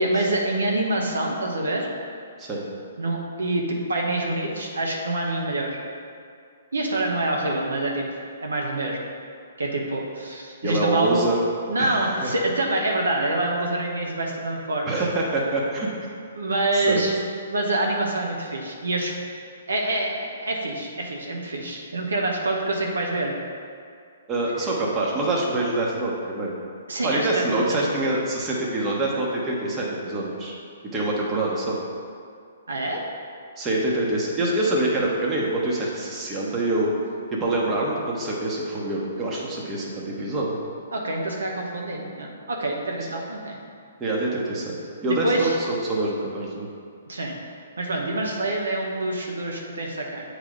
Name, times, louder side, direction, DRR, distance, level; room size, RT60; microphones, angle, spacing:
voice 1, 0.0-1.9 3.0-5.8 6.7-8.0 8.4-9.0 9.6-11.2 11.7-14.9 16.4-17.2 17.5-19.1 19.7-23.3 26.9-28.0 32.7-33.0 40.9-43.6 45.1-45.5 47.1-47.4 47.8-50.2, right 2 dB, 80° right, 0 dB, 0.8 m, -26 dB
voice 2, 10.6-11.4 11.8-12.3 14.8-16.1 16.7-17.0 24.3-26.5 27.0-30.5 30.9-31.8 33.6-36.9 37.3-40.6 44.0-44.8 45.0-46.7, right 2 dB, 20° right, -3 dB, 1.1 m, -25 dB
8.0 x 3.3 x 3.8 m, 2.2 s
figure-of-eight pair, 130°, 0 cm